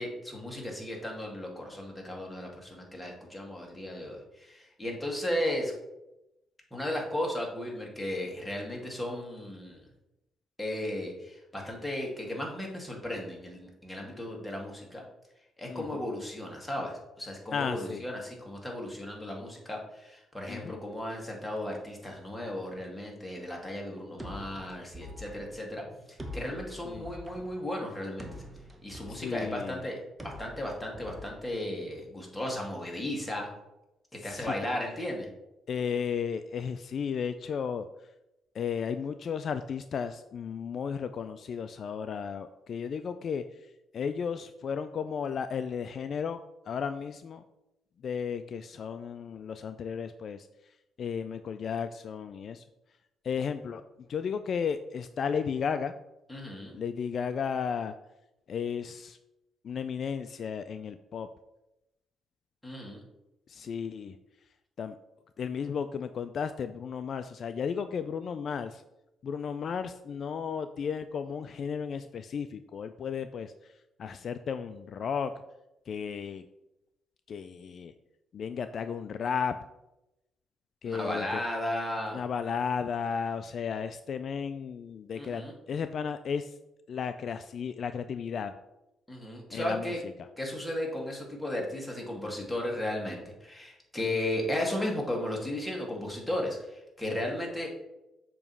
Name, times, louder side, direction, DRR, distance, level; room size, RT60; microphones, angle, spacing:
voice 1, 0.0-5.7 6.7-9.8 10.6-15.0 15.6-28.3 28.8-30.0 30.2-33.5 34.2-35.3 56.3-56.8 62.6-63.0 80.9-82.2 85.2-85.5 89.1-90.0 90.4-97.7, left 1 dB, 5° left, -1 dB, 1.8 m, -35 dB
voice 2, 15.7-16.0 17.5-18.0 20.5-20.8 26.8-27.1 29.1-29.8 34.2-34.5 35.7-37.9 38.5-43.4 43.9-47.4 48.0-50.5 51.0-52.6 53.2-53.8 54.1-55.9 56.7-57.9 58.5-59.2 59.6-61.3 63.5-64.1 64.8-64.9 65.4-68.8 69.2-73.5 74.0-75.3 75.9-76.4 77.3-77.9 78.3-79.6 80.8-81.4 82.1-86.5 86.9-88.5 89.5-89.9 94.0-94.1, left 6 dB, 55° left, 10 dB, 0.3 m, -34 dB
sound 1, 24.2-32.1, left 1 dB, 15° right, 0.9 m, -46 dB
7.0 x 3.0 x 5.4 m, 0.92 s
cardioid pair, 90°, 0 cm